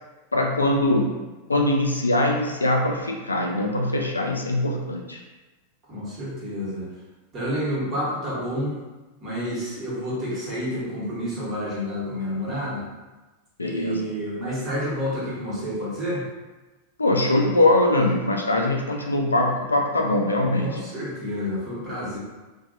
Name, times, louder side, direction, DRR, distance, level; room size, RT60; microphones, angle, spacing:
voice 1, 0.3-1.1 1.5-5.2 13.6-14.1 17.0-20.8, left 1 dB, 80° left, 1 dB, 0.3 m, -22 dB
voice 2, 5.9-6.9 7.3-8.8 9.2-12.8 13.6-16.3 20.6-22.2, equal, 25° right, -8 dB, 1.2 m, -29 dB
2.6 x 2.2 x 2.6 m, 1.2 s
figure-of-eight pair, 90°, 0 cm